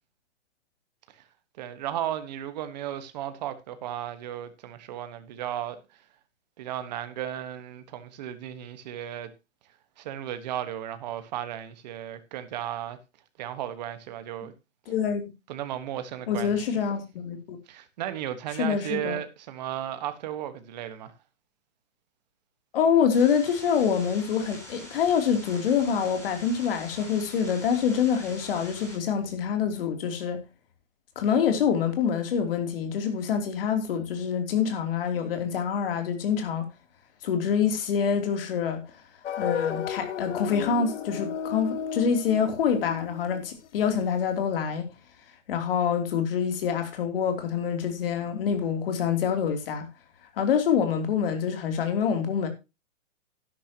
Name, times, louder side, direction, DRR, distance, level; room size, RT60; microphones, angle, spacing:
voice 1, 1.6-6.0 6.6-9.3 10.0-13.0 13.4-14.5 15.5-16.8 17.7-21.1, right 11 dB, 35° right, 1.4 m, -35 dB
voice 2, 14.9-15.3 16.3-17.6 18.6-19.2 22.7-30.4 31.1-36.6 37.2-38.8 39.4-44.8 45.5-49.9 50.4-52.5, left 7 dB, 45° left, 3.1 m, -26 dB
sound 1, 23.1-29.0, left 1 dB, 5° left, 5.4 m, -45 dB
sound 2, 39.2-44.1, left 8 dB, 65° left, 1.2 m, -34 dB
12.0 x 11.5 x 2.9 m
hypercardioid pair, 160°, 38 cm